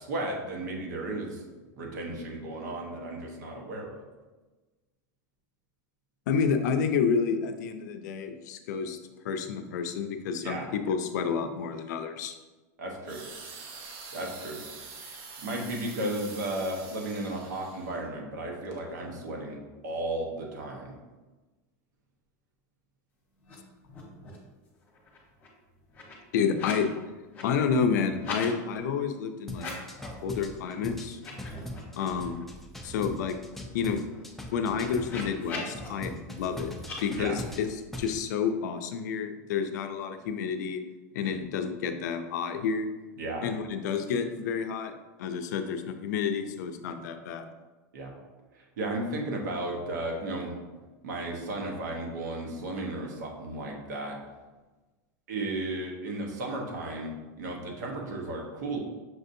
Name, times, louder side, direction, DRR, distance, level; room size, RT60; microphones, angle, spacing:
voice 1, 0.0-1.4 1.8-4.0 10.4-10.7 12.8-13.2 14.1-14.6 15.4-19.6 19.8-21.0 31.7-31.8 37.1-37.4 43.2-43.4 47.9-48.1 48.5-50.6 51.0-54.2 55.3-58.8, right 1 dB, 90° right, 0 dB, 1.0 m, -34 dB
voice 2, 6.3-9.0 9.2-12.3 26.3-26.9 27.4-29.7 30.2-31.2 32.0-32.4 32.8-33.4 33.7-34.0 34.5-36.7 37.0-40.8 41.1-42.9 43.4-44.9 45.2-47.5, left 6 dB, 80° left, 7 dB, 0.4 m, -29 dB
sound 1, 13.0-18.0 18.6-18.8, right 4 dB, 55° right, 0.7 m, -45 dB
sound 2, 23.4-23.6 23.8-24.5 24.8-26.9 27.2-28.5 29.5-30.2 30.6-30.7 31.1-32.4 32.8-32.9 33.2-35.9 36.8-37.0, left 3 dB, 20° left, 1.0 m, -42 dB
sound 3, 29.5-35.4 35.7-38.2, equal, ahead, 0.4 m, -41 dB
5.9 x 2.6 x 2.6 m, 1.2 s
supercardioid pair, 135°, 9 cm